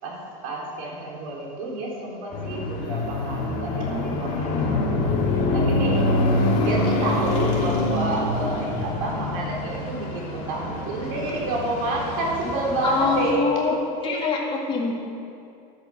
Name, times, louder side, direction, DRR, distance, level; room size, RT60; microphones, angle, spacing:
voice 1, 0.0-13.7 14.0-14.3, right 1 dB, 70° right, -3 dB, 3.8 m, -29 dB
sound 1, 2.3-13.3, left 2 dB, 50° left, 3.0 m, -25 dB
voice 2, 12.8-13.8 14.0-15.0, left 4 dB, 30° left, -3 dB, 2.6 m, -25 dB
12.0 x 9.3 x 6.5 m, 2.5 s
supercardioid pair, 145°, 18 cm